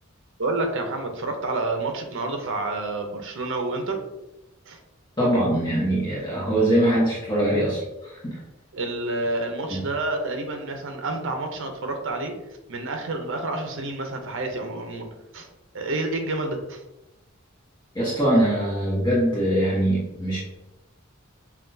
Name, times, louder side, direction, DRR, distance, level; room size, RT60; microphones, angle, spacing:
voice 1, 0.4-4.0 4.7-4.8 8.7-12.3 12.7-15.1 15.3-15.5 15.7-16.8, right 2 dB, 65° right, 4 dB, 0.7 m, -29 dB
voice 2, 5.2-8.4 9.7-9.8 17.9-20.4, right 1 dB, 20° left, -7 dB, 1.0 m, -22 dB
5.7 x 2.3 x 2.6 m, 0.97 s
head